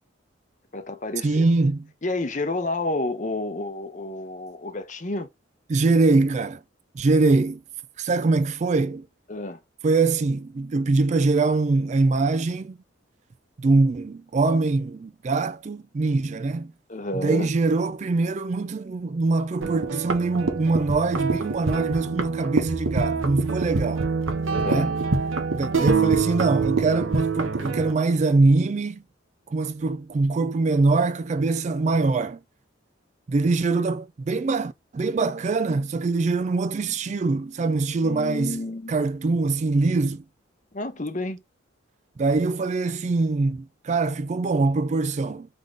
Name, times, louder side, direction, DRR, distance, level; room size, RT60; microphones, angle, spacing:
voice 1, 0.7-1.5 2.0-5.3 9.3-9.6 16.9-17.5 24.5-24.9 38.0-38.9 40.7-41.4, left 2 dB, 40° left, 0.7 m, -30 dB
voice 2, 1.2-1.9 5.7-6.6 6.9-7.6 8.0-9.1 9.8-12.8 13.6-16.7 17.1-24.1 24.6-24.9 25.5-29.0 29.5-32.4 33.3-40.2 42.2-45.5, right 3 dB, 35° right, 0.3 m, -23 dB
sound 1, 19.6-27.9, right 4 dB, 85° right, 1.0 m, -25 dB
3.8 x 3.5 x 3.6 m
head